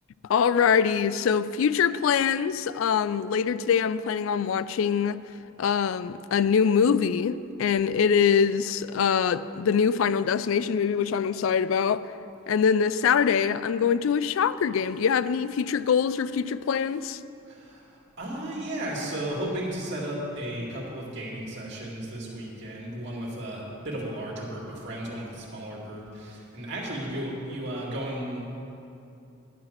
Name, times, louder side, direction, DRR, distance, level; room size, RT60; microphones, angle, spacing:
voice 1, 0.3-5.2 5.6-12.0 12.5-17.2, left 7 dB, 75° left, 0.3 m, -24 dB
voice 2, 17.5-28.5, right 1 dB, 60° right, 2.3 m, -34 dB
11.0 x 5.9 x 7.5 m
head